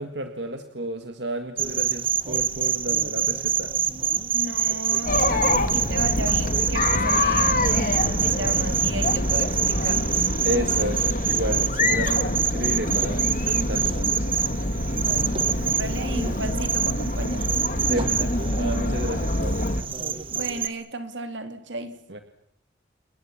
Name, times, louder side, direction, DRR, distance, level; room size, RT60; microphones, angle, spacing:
voice 1, 0.0-3.7 10.4-14.4 15.1-16.0 17.8-19.6 22.1-22.2, right 1 dB, 70° right, 7 dB, 2.0 m, -32 dB
sound 1, 1.6-20.7, right 8 dB, 30° right, 1.1 m, -26 dB
voice 2, 4.3-10.2 14.9-17.5 20.3-21.9, right 2 dB, 85° right, 8 dB, 3.2 m, -34 dB
Chatter, 5.1-19.8, left 2 dB, 45° left, 2.0 m, -26 dB
29.0 x 22.0 x 7.3 m, 0.69 s
head